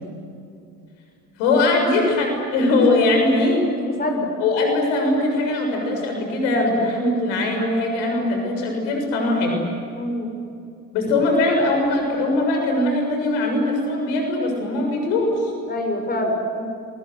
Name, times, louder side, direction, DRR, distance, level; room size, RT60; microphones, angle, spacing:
voice 1, 1.4-3.7 4.4-9.6 10.9-15.5, left 2 dB, 65° left, 2 dB, 7.2 m, -21 dB
voice 2, 3.8-4.3 10.0-10.3 15.7-16.6, left 1 dB, 20° left, 3 dB, 6.7 m, -25 dB
29.0 x 24.5 x 8.1 m, 2.5 s
figure-of-eight pair, 60°, 49 cm